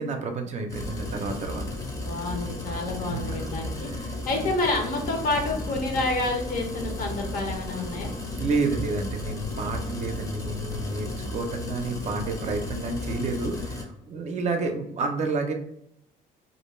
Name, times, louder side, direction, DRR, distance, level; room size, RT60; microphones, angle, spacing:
voice 1, 0.0-1.6 3.0-3.5 3.8-4.1 8.4-15.5, right 3 dB, 40° right, 4 dB, 0.5 m, -30 dB
sound 1, 0.7-13.8, left 2 dB, 20° left, 0.6 m, -34 dB
voice 2, 2.0-8.1, left 2 dB, 55° left, 3 dB, 0.7 m, -29 dB
2.5 x 2.2 x 3.0 m, 0.78 s
cardioid pair, 110°, 17 cm